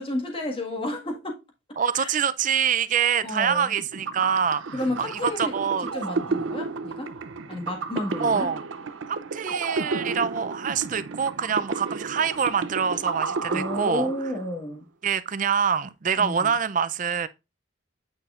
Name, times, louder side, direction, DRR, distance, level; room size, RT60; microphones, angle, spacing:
voice 1, 0.0-1.4 1.9-2.1 3.2-3.7 4.7-5.5 5.9-7.1 7.5-8.5 13.5-14.8 16.2-16.5, left 1 dB, 30° left, 1.7 m, -31 dB
voice 2, 1.8-4.6 5.0-5.9 8.2-8.6 9.1-14.1 15.0-17.3, right 7 dB, 40° right, 0.4 m, -25 dB
sound 1, 3.8-14.6, right 4 dB, 85° right, 0.6 m, -32 dB
8.9 x 5.7 x 2.5 m
head